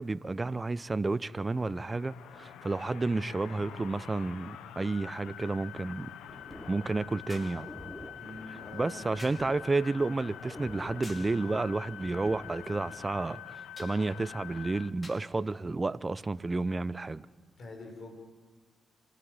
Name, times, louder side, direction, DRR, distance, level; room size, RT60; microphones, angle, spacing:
voice 1, 0.0-6.1 6.7-7.7 8.7-17.3, right 3 dB, 30° right, 0.8 m, -31 dB
sound 1, 1.2-14.9, left 11 dB, 85° left, 0.9 m, -46 dB
sound 2, 6.3-13.2, equal, 15° left, 3.5 m, -49 dB
sound 3, 7.3-7.6 9.2-9.5 11.0-11.4 13.8-14.0 15.0-15.3 16.4-16.5, left 1 dB, 30° left, 5.3 m, -49 dB
voice 2, 8.2-9.1 17.6-18.2, left 2 dB, 60° left, 5.4 m, -45 dB
26.5 x 13.5 x 9.6 m
supercardioid pair, 45°, 0 cm